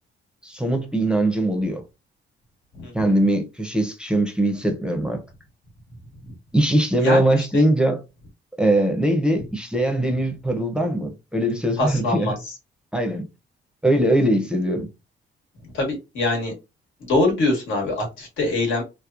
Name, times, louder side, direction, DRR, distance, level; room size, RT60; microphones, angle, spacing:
voice 1, 0.4-1.8 2.9-5.2 6.5-8.0 8.6-12.3 12.9-13.3 13.8-14.9, right 1 dB, 5° right, 0.5 m, -21 dB
voice 2, 2.8-3.1 6.9-7.2 7.5-7.6 11.8-12.3 15.7-16.5 17.0-18.8, left 2 dB, 90° left, 1.3 m, -23 dB
2.9 x 2.1 x 2.3 m
cardioid pair, 120°, 20 cm